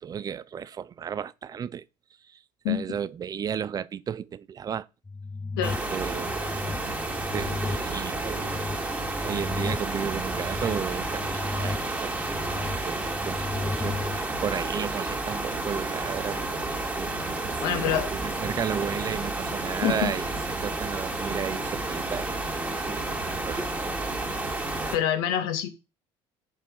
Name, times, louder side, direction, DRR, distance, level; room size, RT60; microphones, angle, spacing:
voice 1, 0.0-1.8 2.2-4.9 5.9-6.4 7.3-8.5 9.2-12.2 12.8-17.1 17.7-20.3 20.6-22.3 22.6-23.7, right 8 dB, 35° right, 0.6 m, -34 dB
sound 1, 5.1-14.2, left 3 dB, 10° left, 0.4 m, -35 dB
sound 2, 5.6-25.0, right 2 dB, 15° right, 2.6 m, -31 dB
voice 2, 17.6-18.1 19.8-20.1 24.9-25.7, left 10 dB, 85° left, 2.2 m, -26 dB
7.5 x 7.1 x 5.6 m
supercardioid pair, 105°, 11 cm